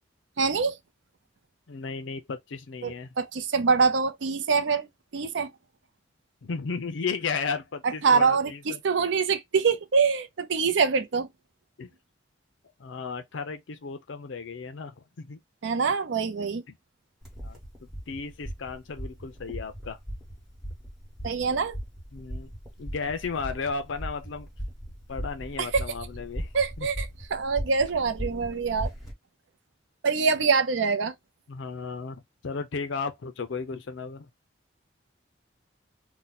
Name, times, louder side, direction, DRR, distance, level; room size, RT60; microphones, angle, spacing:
voice 1, 0.4-0.8 2.8-4.9 5.1-5.5 7.8-11.3 15.6-16.6 21.2-21.8 25.6-25.8 26.5-28.9 30.0-31.1, right 5 dB, 80° right, 0.5 m, -25 dB
voice 2, 1.7-3.1 6.4-8.8 11.8-11.9 12.8-15.4 17.4-17.6 18.1-20.0 22.1-22.5 22.8-24.5 25.1-26.5 26.8-26.9 31.5-34.3, left 5 dB, 80° left, 0.5 m, -34 dB
sound 1, 17.2-29.1, equal, 5° right, 1.3 m, -38 dB
2.7 x 2.2 x 3.9 m
head